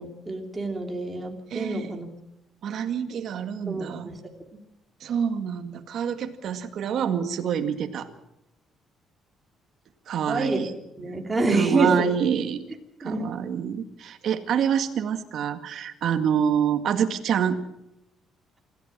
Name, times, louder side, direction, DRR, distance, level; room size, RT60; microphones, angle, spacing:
voice 1, 0.0-2.1 3.7-4.2 10.3-10.6 11.0-12.1 13.0-13.2, right 2 dB, 15° right, 2 dB, 3.1 m, -27 dB
voice 2, 1.5-1.9 2.6-4.1 5.0-8.1 10.1-10.7 11.5-12.6 13.0-17.6, right 8 dB, 50° right, 7 dB, 2.0 m, -26 dB
26.5 x 14.5 x 7.5 m, 0.90 s
cardioid pair, 165°, 0 cm